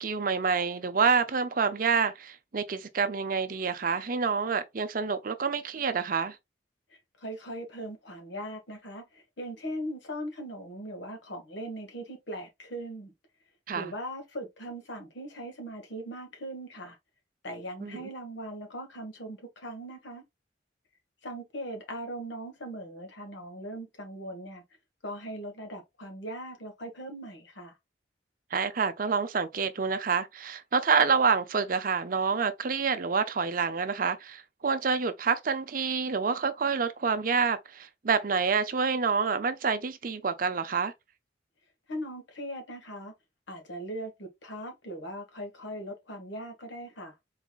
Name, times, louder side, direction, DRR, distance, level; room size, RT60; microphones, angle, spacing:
voice 1, 0.0-6.4 13.7-13.9 17.8-18.1 28.5-40.9, right 5 dB, 45° right, 0.5 m, -27 dB
voice 2, 6.9-13.1 13.7-17.0 17.4-20.2 21.2-24.6 25.0-27.7 41.9-43.1 43.5-47.1, right 1 dB, 75° left, 1.5 m, -39 dB
4.0 x 3.7 x 2.4 m
head